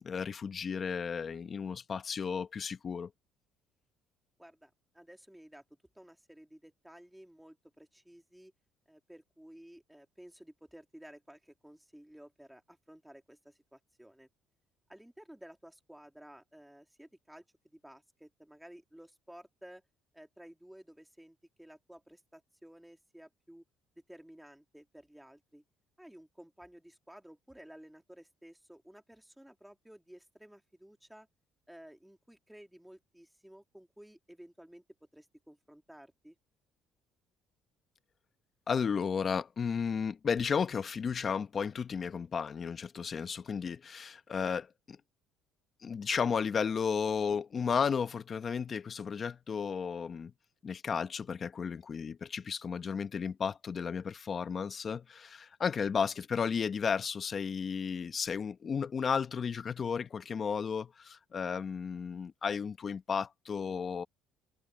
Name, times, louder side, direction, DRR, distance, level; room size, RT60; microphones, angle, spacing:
voice 1, 0.0-3.1 38.7-45.0 45.8-50.3 50.6-64.0, left 6 dB, 40° left, 1.1 m, -33 dB
voice 2, 4.4-5.6 5.9-8.5 8.9-14.3 14.9-17.4 17.7-19.8 20.1-23.6 24.1-25.6 26.0-31.3 31.7-36.3, right 1 dB, 5° right, 3.2 m, -54 dB
open air
cardioid pair, 100°, 0 cm